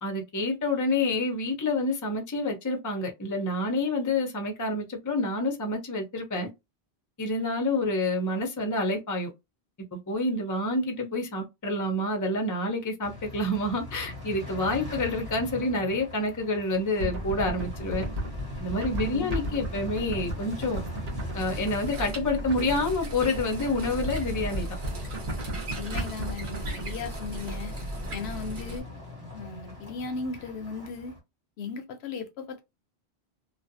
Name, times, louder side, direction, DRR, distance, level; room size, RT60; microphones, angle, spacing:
voice 1, 0.0-6.5 7.2-9.3 10.1-18.1 18.6-20.8 21.3-24.7, left 2 dB, 25° left, 0.5 m, -28 dB
sound 1, 13.0-31.2, left 1 dB, 20° right, 1.2 m, -41 dB
sound 2, 17.0-27.1, equal, 40° right, 0.9 m, -35 dB
sound 3, 21.4-28.8, right 2 dB, 70° right, 1.2 m, -38 dB
voice 2, 25.7-27.7 28.1-28.9 29.3-31.1 31.6-32.6, left 4 dB, 75° left, 0.8 m, -36 dB
2.5 x 2.3 x 2.6 m
omnidirectional pair, 1.1 m